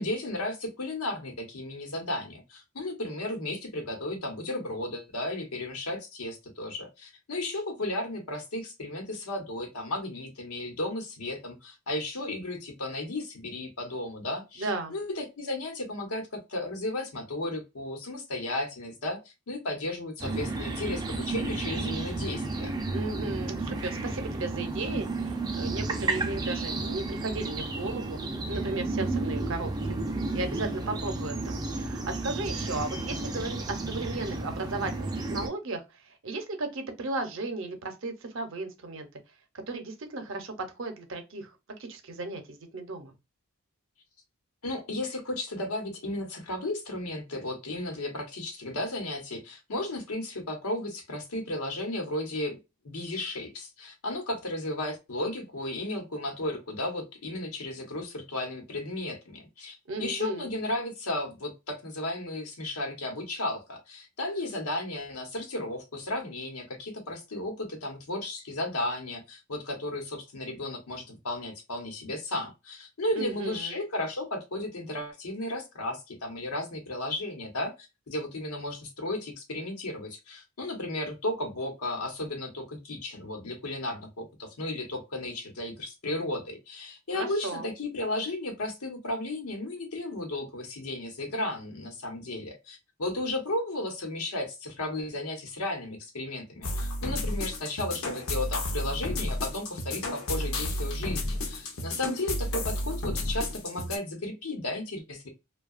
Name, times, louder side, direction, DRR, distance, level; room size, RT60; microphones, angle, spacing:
voice 1, 0.0-22.7 44.6-52.6 52.8-105.3, left 1 dB, 90° left, 1.0 m, -34 dB
voice 2, 14.6-14.9 22.9-28.2 28.5-30.0 30.3-39.1 39.7-41.5 41.8-43.1 59.9-60.5 73.2-73.7 87.1-87.7, right 3 dB, 60° right, 0.6 m, -35 dB
sound 1, 20.2-35.5, right 2 dB, 20° right, 0.3 m, -32 dB
sound 2, 96.6-104.0, left 1 dB, 65° left, 0.6 m, -32 dB
2.7 x 2.2 x 2.3 m
head